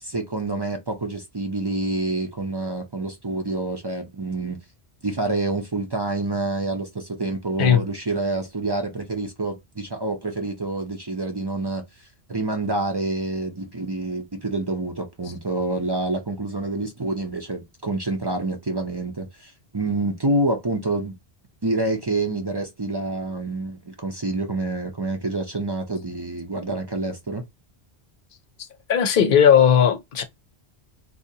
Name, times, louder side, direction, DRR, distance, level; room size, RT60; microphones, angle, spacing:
voice 1, 0.0-4.6 5.0-11.8 12.3-21.1 21.6-27.4, right 2 dB, 30° right, 0.5 m, -27 dB
voice 2, 28.9-30.2, left 8 dB, 60° left, 0.8 m, -16 dB
3.7 x 2.8 x 2.7 m
omnidirectional pair, 1.1 m